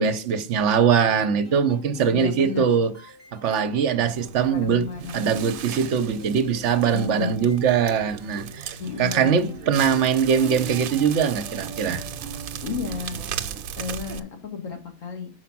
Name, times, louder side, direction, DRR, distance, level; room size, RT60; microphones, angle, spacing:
voice 1, 0.0-2.9 3.3-4.9 5.1-12.0, right 7 dB, 60° right, 1.0 m, -22 dB
sound 1, 0.9-12.5, left 1 dB, 15° left, 2.6 m, -47 dB
voice 2, 2.1-2.8 4.5-5.3 6.9-7.4 8.8-9.5 12.6-13.2 13.8-15.3, left 6 dB, 70° left, 1.7 m, -32 dB
Crackle, 4.0-14.2, right 9 dB, 90° right, 1.1 m, -36 dB
5.1 x 4.8 x 5.9 m
omnidirectional pair, 1.4 m